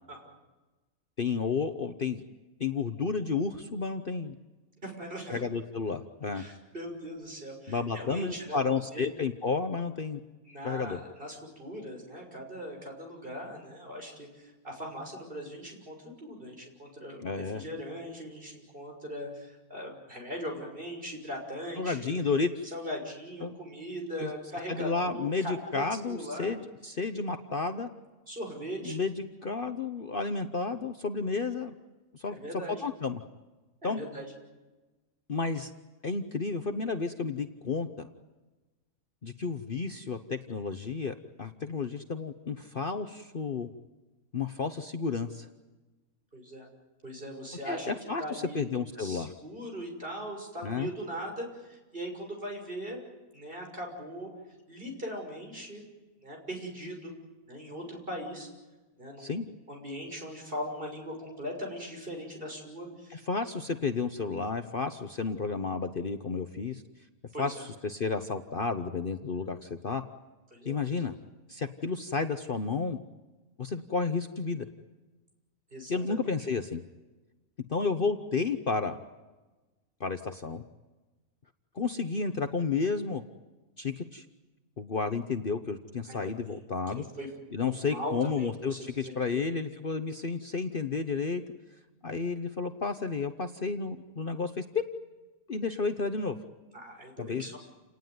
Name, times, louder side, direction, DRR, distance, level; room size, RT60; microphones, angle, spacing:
voice 1, 1.2-2.2 2.6-4.4 5.3-6.4 7.7-10.2 10.6-11.0 17.2-17.6 21.8-22.7 23.4-23.5 24.2-24.3 24.7-27.9 28.8-31.7 32.1-32.4 32.7-33.2 33.8-34.0 35.3-35.7 36.0-38.1 39.2-41.1 41.4-43.7 44.3-45.5 47.6-49.3 50.6-50.9 59.2-59.4 63.1-66.8 67.4-70.0 70.6-71.1 71.5-73.0 73.6-74.7 75.9-76.8 77.7-79.0 80.0-80.6 81.7-83.2 83.8-84.2 84.8-87.0 87.5-91.4 92.0-94.8 95.5-96.4 97.2-97.4, left 4 dB, 40° left, 7 dB, 1.1 m, -31 dB
voice 2, 4.8-5.4 6.3-8.6 8.9-9.0 10.4-22.1 22.7-26.5 28.3-29.0 32.3-32.8 33.8-34.3 46.3-46.7 47.0-47.9 48.2-48.6 49.0-53.0 53.3-54.3 54.7-55.8 56.2-57.1 57.5-58.5 59.0-59.3 59.7-63.2 67.3-67.5 70.5-71.1 75.7-76.3 86.1-86.6 86.9-87.3 87.6-89.5 96.7-97.6, equal, 40° right, 2 dB, 6.5 m, -40 dB
29.5 x 19.0 x 9.5 m, 1.2 s
omnidirectional pair, 1.5 m